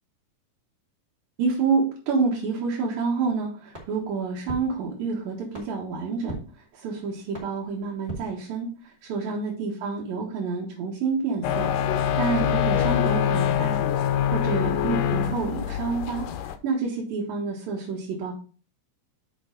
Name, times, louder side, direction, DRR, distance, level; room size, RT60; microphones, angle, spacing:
voice 1, 1.4-6.4 6.7-13.8 14.3-16.3 16.6-18.3, right 4 dB, 75° right, -4 dB, 3.2 m, -28 dB
sound 1, 3.7-9.0, right 2 dB, 25° right, 1.7 m, -43 dB
sound 2, 11.4-16.6, left 9 dB, 80° left, 2.1 m, -24 dB
6.4 x 6.3 x 3.9 m, 0.39 s
omnidirectional pair, 4.1 m